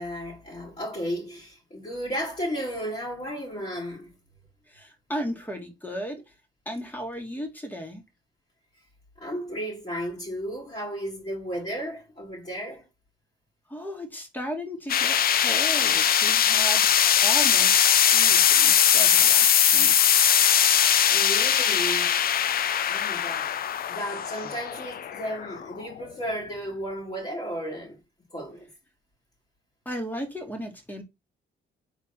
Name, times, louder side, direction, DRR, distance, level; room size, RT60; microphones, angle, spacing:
voice 1, 0.0-4.1 9.2-12.8 21.1-22.2 22.9-23.5 23.9-28.0 28.3-28.7, equal, 35° left, 2.4 m, -34 dB
voice 2, 4.7-6.2 6.7-8.0 13.7-20.0 24.4-24.5 29.9-31.0, equal, 10° left, 1.9 m, -35 dB
sound 1, 14.9-26.0, left 9 dB, 50° left, 0.5 m, -21 dB
4.1 x 3.3 x 3.7 m
cardioid pair, 90°, 20 cm